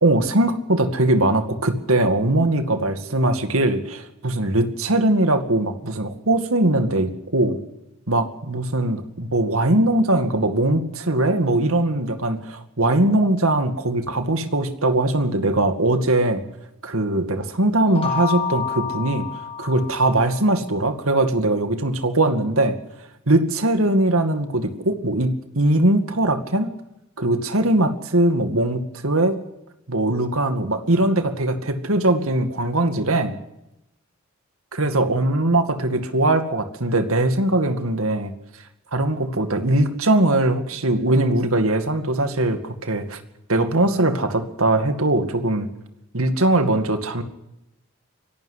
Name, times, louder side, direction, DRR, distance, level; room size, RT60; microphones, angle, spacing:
voice 1, 0.0-7.6 8.1-16.4 16.8-19.3 19.6-22.8 23.3-26.7 27.2-29.4 29.9-33.4 34.7-38.3 38.9-43.2 43.5-45.7 46.1-47.2, right 1 dB, 70° right, 8 dB, 2.2 m, -21 dB
sound 1, 17.8-20.5, left 6 dB, 25° left, 1.9 m, -29 dB
24.0 x 12.0 x 9.8 m, 0.87 s
head